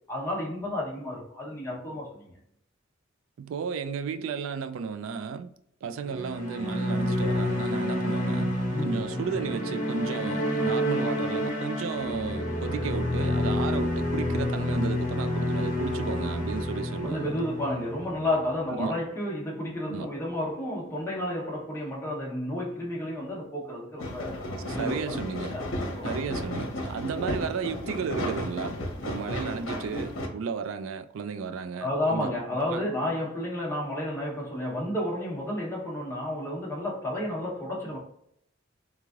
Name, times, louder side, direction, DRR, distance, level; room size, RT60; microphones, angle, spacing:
voice 1, 0.1-2.3 8.7-9.3 17.0-24.4 24.7-25.1 25.5-26.2 31.8-38.0, left 1 dB, 15° left, 0.9 m, -31 dB
voice 2, 3.4-5.5 5.8-17.4 18.7-19.0 19.9-20.1 24.7-25.6 26.0-28.8 29.1-32.4 32.7-32.8, right 6 dB, 80° right, 0.3 m, -34 dB
sound 1, 6.0-18.5, left 1 dB, 45° left, 1.0 m, -29 dB
sound 2, 24.0-30.3, left 1 dB, 75° left, 0.8 m, -33 dB
3.5 x 3.1 x 2.4 m
head